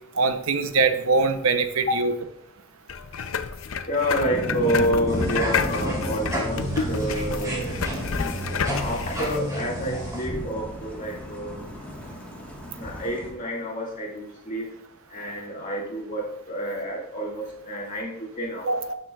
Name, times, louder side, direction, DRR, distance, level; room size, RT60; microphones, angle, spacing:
voice 1, 0.1-2.1 18.6-18.9, right 4 dB, 80° right, 9 dB, 0.7 m, -22 dB
sound 1, 2.9-9.4, left 6 dB, 70° left, 0.5 m, -30 dB
voice 2, 3.9-7.8 8.8-11.7 12.7-14.6 15.1-18.8, equal, 40° left, -2 dB, 2.1 m, -29 dB
sound 2, 4.2-13.3, left 1 dB, 5° left, 1.4 m, -34 dB
sound 3, 5.1-10.2, right 1 dB, 15° right, 3.1 m, -32 dB
12.0 x 6.7 x 2.3 m, 0.76 s
head